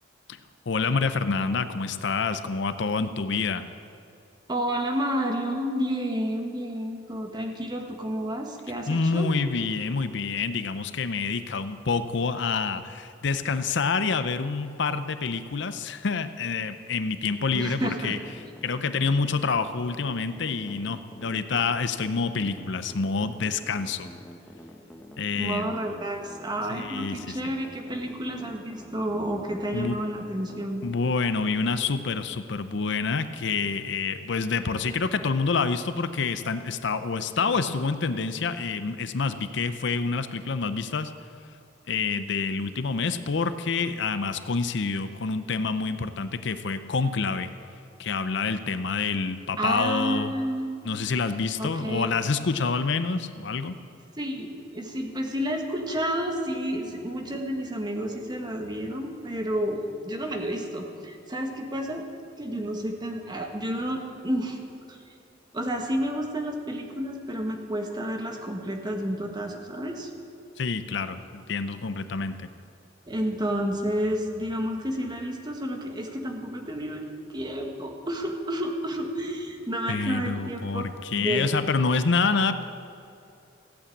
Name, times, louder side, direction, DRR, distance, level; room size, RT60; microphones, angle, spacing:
voice 1, 0.7-3.6 8.9-18.2 18.6-24.1 25.2-25.7 26.7-27.4 29.7-30.0 30.8-41.1 41.9-47.5 48.0-50.3 50.8-53.7 70.6-72.5 79.9-82.6, left 4 dB, 65° left, 11 dB, 0.6 m, -27 dB
voice 2, 4.5-9.3 17.5-18.1 25.3-30.8 49.6-50.8 51.6-52.1 54.2-62.0 62.4-64.6 64.9-65.0 65.5-70.1 73.1-80.9 81.2-81.6, equal, 25° right, 3 dB, 1.5 m, -30 dB
sound 1, 17.8-31.1, equal, 5° left, 1.1 m, -46 dB
15.5 x 8.5 x 8.5 m, 2.6 s
head